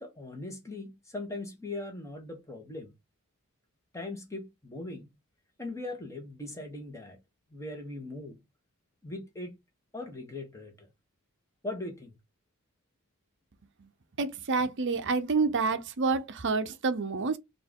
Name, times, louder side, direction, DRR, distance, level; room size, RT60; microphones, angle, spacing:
voice 1, 0.0-2.9 3.9-5.1 5.6-7.2 7.5-8.4 9.0-9.6 9.9-10.9 11.6-12.2, left 2 dB, 15° left, 1.3 m, -40 dB
voice 2, 14.2-17.4, right 4 dB, 55° right, 0.7 m, -28 dB
4.3 x 2.7 x 3.6 m
head